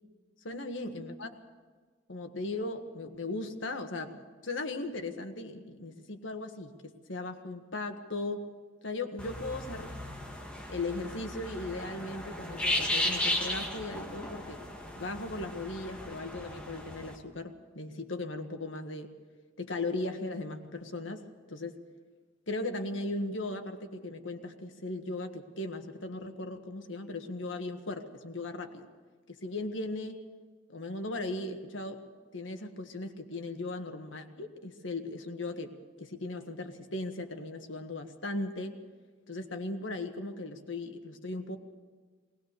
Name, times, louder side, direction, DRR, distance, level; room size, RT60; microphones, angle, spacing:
voice 1, 0.4-1.3 2.1-8.4 8.8-9.9 10.7-14.6 14.9-19.1 19.6-21.8 22.5-28.9 29.3-30.2 30.7-32.0 32.3-38.8 39.3-41.6, left 2 dB, 85° left, 6 dB, 1.6 m, -37 dB
sound 1, 9.2-17.1, left 1 dB, 5° left, 2.1 m, -35 dB
20.5 x 19.0 x 6.8 m, 1.5 s
head